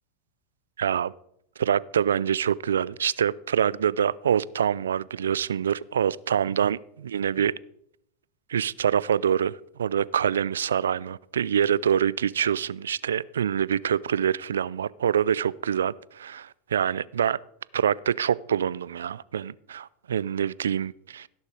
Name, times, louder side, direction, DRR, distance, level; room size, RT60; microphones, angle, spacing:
voice 1, 0.8-1.1 1.6-7.5 8.5-17.4 17.7-21.3, right 8 dB, 90° right, 0.3 m, -25 dB
16.5 x 6.6 x 4.9 m
hypercardioid pair, 105°, 0 cm